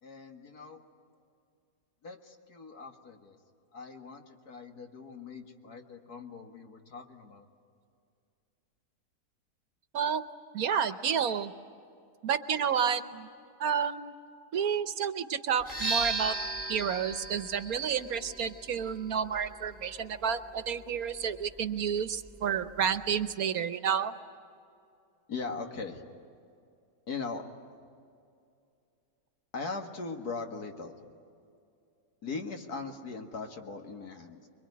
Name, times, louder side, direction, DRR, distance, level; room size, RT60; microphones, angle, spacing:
voice 1, 0.0-0.8 2.0-3.4 3.7-7.5 25.3-26.0 27.1-27.4 29.5-31.0 32.2-34.5, left 4 dB, 65° left, 4 dB, 2.3 m, -40 dB
voice 2, 9.9-10.3 10.5-11.5 12.2-13.3 13.6-14.1 14.5-16.3 16.7-24.1, right 7 dB, 65° right, 11 dB, 1.3 m, -30 dB
sound 1, 15.6-23.3, right 3 dB, 10° left, 1.6 m, -38 dB
26.0 x 23.0 x 9.6 m, 2.5 s
omnidirectional pair, 1.8 m